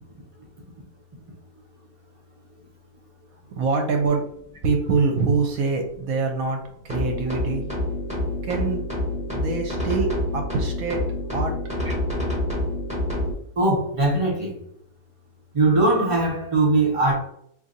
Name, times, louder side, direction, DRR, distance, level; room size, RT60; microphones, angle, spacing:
voice 1, 3.6-6.6 6.8-7.6 8.4-8.8 9.3-11.0 11.3-11.5, right 4 dB, 70° right, 1.0 m, -24 dB
sound 1, 6.9-13.3, left 1 dB, 5° right, 0.6 m, -27 dB
voice 2, 13.6-14.6 15.5-17.2, right 2 dB, 50° right, 0.3 m, -20 dB
3.9 x 2.7 x 2.6 m
omnidirectional pair, 1.7 m